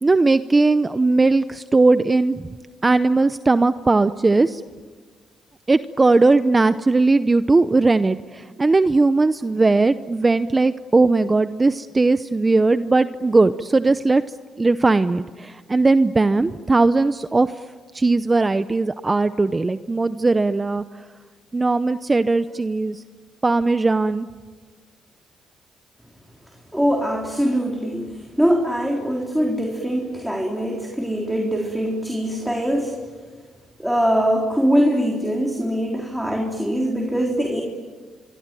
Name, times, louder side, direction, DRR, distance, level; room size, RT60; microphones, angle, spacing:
voice 1, 0.0-2.4 2.8-4.6 5.7-14.2 14.6-17.5 17.9-20.8 21.5-23.0 23.4-24.3, right 3 dB, 25° right, 12 dB, 0.7 m, -18 dB
voice 2, 26.7-33.0 33.8-37.6, equal, 5° right, 0 dB, 3.8 m, -22 dB
25.0 x 24.5 x 9.1 m, 1.5 s
cardioid pair, 90°, 0 cm